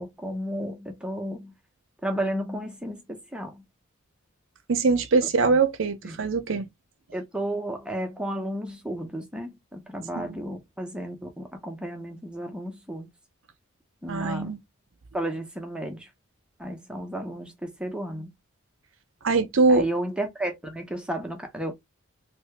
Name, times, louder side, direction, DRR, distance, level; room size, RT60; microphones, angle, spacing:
voice 1, 0.0-1.5 2.0-3.6 5.5-5.6 6.0-6.2 7.1-13.1 14.0-14.5 15.1-16.1 16.6-18.3 19.7-21.7, right 1 dB, 5° right, 0.7 m, -33 dB
voice 2, 4.7-6.7 10.2-10.4 14.1-14.6 19.2-19.9, right 4 dB, 60° right, 0.6 m, -22 dB
2.8 x 2.7 x 3.2 m
head